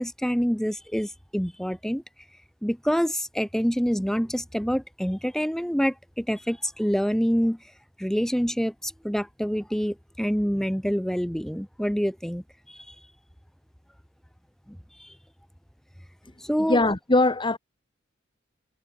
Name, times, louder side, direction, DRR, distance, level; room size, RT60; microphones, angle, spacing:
voice 1, 0.0-2.0 2.6-7.6 8.0-12.4 12.9-13.0 14.7-14.8 16.5-16.8, equal, ahead, 1.9 m, -26 dB
voice 2, 16.7-17.6, left 2 dB, 25° left, 1.5 m, -21 dB
head